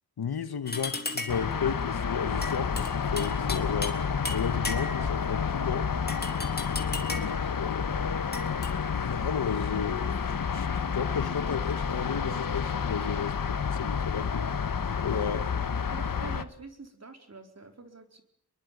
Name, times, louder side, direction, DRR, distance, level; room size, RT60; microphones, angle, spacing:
voice 1, 0.2-4.0 4.3-5.9 7.1-7.9 8.9-14.5 15.0-15.5, left 7 dB, 90° left, 1.6 m, -33 dB
sound 1, 0.7-1.5 2.4-5.1 6.1-7.4 8.3-8.7, left 2 dB, 25° left, 3.5 m, -36 dB
sound 2, 1.3-16.4, left 6 dB, 65° left, 1.5 m, -30 dB
voice 2, 6.8-7.3 15.1-15.2 15.9-18.2, right 4 dB, 45° right, 4.5 m, -47 dB
25.5 x 22.5 x 9.5 m
wide cardioid pair, 105°, 37 cm